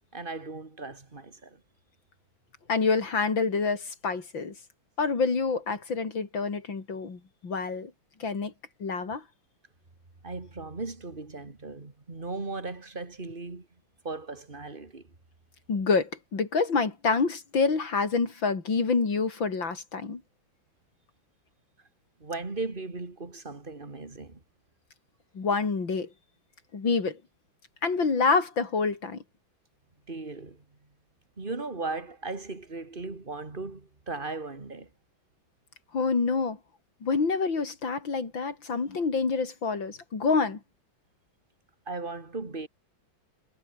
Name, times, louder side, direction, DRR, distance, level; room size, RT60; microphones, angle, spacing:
voice 1, 0.1-1.6 10.2-13.7 14.0-15.0 22.2-24.4 30.1-30.6 31.4-34.9 41.9-42.7, right 3 dB, 25° right, 2.8 m, -37 dB
voice 2, 2.7-4.5 5.0-7.9 8.2-8.5 8.8-9.2 15.7-20.2 25.3-26.1 26.7-27.2 27.8-29.2 35.9-36.6 37.0-40.6, left 4 dB, 75° left, 4.1 m, -27 dB
omnidirectional pair, 2.1 m